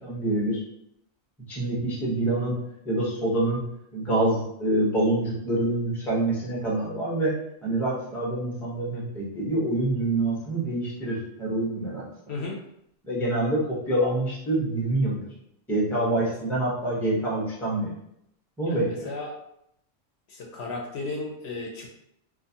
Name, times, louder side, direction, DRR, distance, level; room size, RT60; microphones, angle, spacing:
voice 1, 0.0-0.6 1.5-2.6 2.8-3.6 3.9-7.3 7.6-12.0 13.0-15.2 15.7-17.9 18.6-19.1, right 1 dB, ahead, -5 dB, 0.5 m, -26 dB
voice 2, 18.7-19.3 20.3-21.9, left 3 dB, 65° left, -1 dB, 0.8 m, -35 dB
2.4 x 2.3 x 2.7 m, 0.75 s
omnidirectional pair, 1.3 m